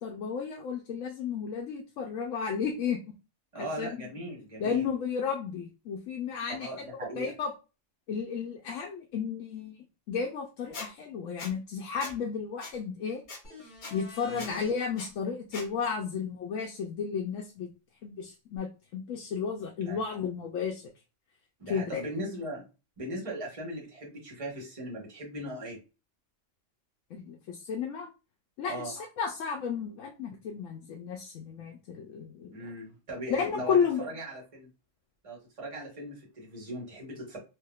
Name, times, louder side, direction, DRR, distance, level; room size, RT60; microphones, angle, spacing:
voice 1, 0.0-3.0 3.5-4.1 4.6-6.7 7.2-7.5 8.1-9.8 10.1-13.2 13.9-17.7 18.0-20.8 21.7-22.0 27.1-28.1 28.6-32.5 33.3-34.0, left 6 dB, 80° left, 1 dB, 0.9 m, -33 dB
voice 2, 3.5-4.9 6.6-7.3 14.2-14.5 19.9-20.0 21.6-22.7 23.0-25.8 28.7-28.9 32.5-34.7 35.2-37.4, equal, 30° right, -2 dB, 1.0 m, -39 dB
Squeak, 10.7-10.9 11.4-11.5 12.0-12.1 12.6-12.7 13.3-13.4 13.8-13.9 14.4-14.5 15.0-15.1 15.5-15.7, left 3 dB, 45° left, 0.8 m, -40 dB
sound 1, 13.4-14.7 18.6-18.7, left 3 dB, 65° left, 1.7 m, -48 dB
3.5 x 2.6 x 2.3 m, 0.30 s
omnidirectional pair, 1.3 m